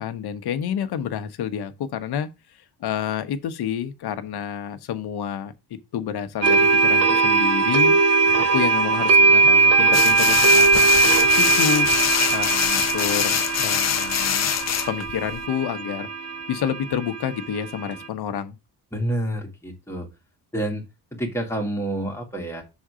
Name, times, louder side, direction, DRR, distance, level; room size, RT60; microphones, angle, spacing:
voice 1, 0.0-5.5 5.9-7.9 8.4-10.9 11.2-11.9 12.3-14.5 14.9-16.1 16.5-18.6, left 8 dB, 65° left, 1.0 m, -29 dB
sound 1, 6.4-18.0, right 4 dB, 35° right, 0.6 m, -19 dB
sound 2, 9.9-15.5, left 10 dB, 40° left, 0.6 m, -24 dB
voice 2, 18.9-20.1 20.5-20.8 21.1-22.6, right 1 dB, 5° left, 1.9 m, -28 dB
6.2 x 3.7 x 6.1 m
cardioid pair, 145°, 41 cm